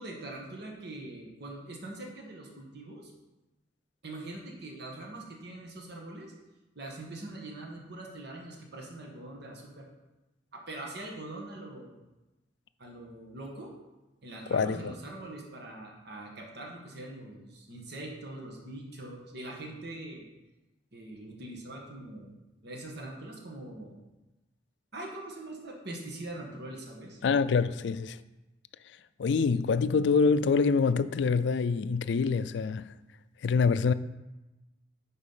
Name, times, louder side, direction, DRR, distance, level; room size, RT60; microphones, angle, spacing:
voice 1, 0.0-3.1 4.0-6.3 6.7-9.8 10.5-11.9 12.8-13.7 14.2-20.2 20.9-22.4 22.6-24.0 24.9-27.2, right 2 dB, 65° right, 1.5 m, -43 dB
voice 2, 14.5-14.9 27.2-28.2 29.2-32.9 33.4-33.9, left 5 dB, 70° left, 0.4 m, -25 dB
9.8 x 4.2 x 5.5 m
head